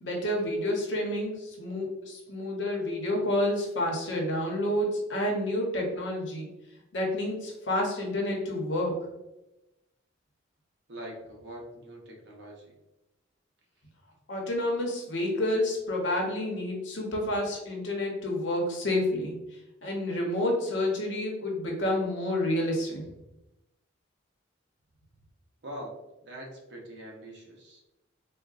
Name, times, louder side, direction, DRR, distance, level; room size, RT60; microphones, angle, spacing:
voice 1, 0.0-6.5 6.9-9.0 14.3-19.3 19.8-23.0, left 1 dB, 65° left, 0 dB, 0.8 m, -29 dB
voice 2, 10.9-12.7 25.6-26.0 26.2-27.8, right 1 dB, 60° right, -1 dB, 0.7 m, -43 dB
3.8 x 2.0 x 2.4 m, 0.94 s
head